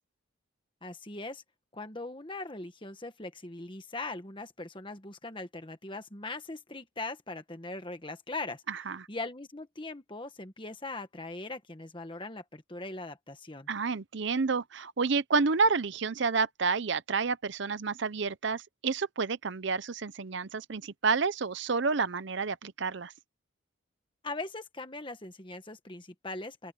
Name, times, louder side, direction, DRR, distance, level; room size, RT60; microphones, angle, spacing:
voice 1, 0.8-1.4 1.7-8.6 9.1-13.7 24.2-26.7, left 2 dB, 25° left, 1.5 m, -40 dB
voice 2, 8.7-9.1 13.7-23.1, right 4 dB, 60° right, 0.6 m, -29 dB
open air
head